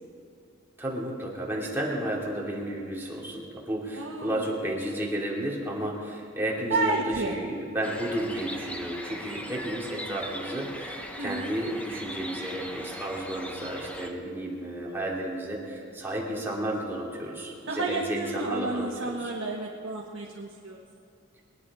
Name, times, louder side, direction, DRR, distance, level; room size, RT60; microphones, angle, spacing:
voice 1, 0.8-19.3, right 1 dB, 10° right, -4 dB, 2.6 m, -32 dB
voice 2, 3.9-4.4 6.7-7.3 11.2-11.5 17.7-20.8, right 3 dB, 70° right, -2 dB, 1.4 m, -31 dB
sound 1, 7.8-14.1, equal, 5° left, 1.0 m, -39 dB
22.0 x 10.0 x 4.8 m, 2.6 s
head